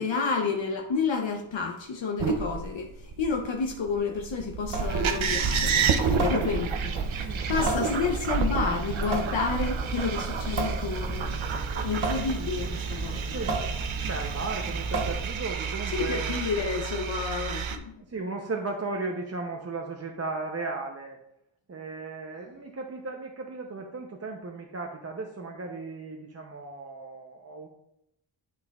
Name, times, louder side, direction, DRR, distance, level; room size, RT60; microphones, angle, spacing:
voice 1, 0.0-11.4 11.8-13.4 15.9-17.9, left 5 dB, 65° left, 2 dB, 0.8 m, -30 dB
sound 1, 2.2-17.8, right 6 dB, 70° right, 0.7 m, -30 dB
Water tap faucet / Sink (filling or washing) / Drip, 4.6-15.6, right 2 dB, 50° right, 1.2 m, -34 dB
voice 2, 13.3-13.7 14.0-16.4 18.0-21.2 21.7-27.7, right 3 dB, 30° right, 1 dB, 0.6 m, -36 dB
11.5 x 4.4 x 2.3 m, 0.80 s
wide cardioid pair, 135°, 49 cm